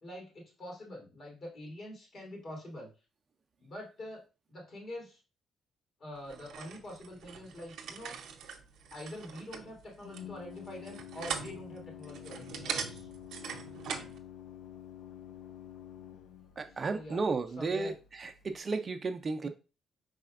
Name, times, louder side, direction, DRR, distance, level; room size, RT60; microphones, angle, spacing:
voice 1, 0.0-2.9 3.6-4.2 4.5-5.2 6.0-8.2 8.9-13.1 16.9-17.2 17.6-17.9 19.4-19.5, left 1 dB, 55° left, 2.6 m, -45 dB
sound 1, 6.3-14.2, right 7 dB, 80° right, 0.7 m, -42 dB
Organ, 8.4-18.6, left 10 dB, 85° left, 0.4 m, -50 dB
voice 2, 16.6-17.9 18.2-19.5, right 4 dB, 40° right, 0.5 m, -33 dB
4.9 x 4.2 x 2.5 m
cardioid pair, 90°, 0 cm